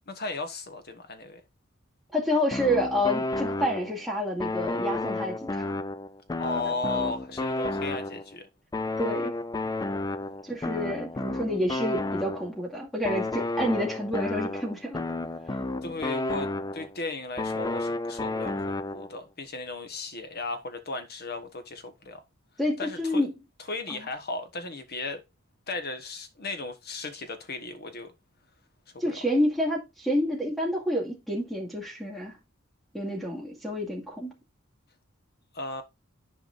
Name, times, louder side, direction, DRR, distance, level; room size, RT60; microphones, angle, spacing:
voice 1, 0.1-1.4 6.4-8.5 15.8-22.2 22.8-23.2 23.7-25.2 25.7-28.1 28.9-29.1 35.5-35.8, left 3 dB, 50° left, 1.3 m, -35 dB
voice 2, 2.1-5.7 9.0-9.3 10.4-15.0 22.6-23.3 23.9-24.1 29.0-32.4 32.9-34.3, equal, ahead, 2.2 m, -29 dB
sound 1, 2.5-4.1 4.4-8.4 8.7-12.6 13.0-17.0 17.4-19.2, left 2 dB, 20° left, 0.4 m, -32 dB
11.0 x 4.9 x 2.6 m
head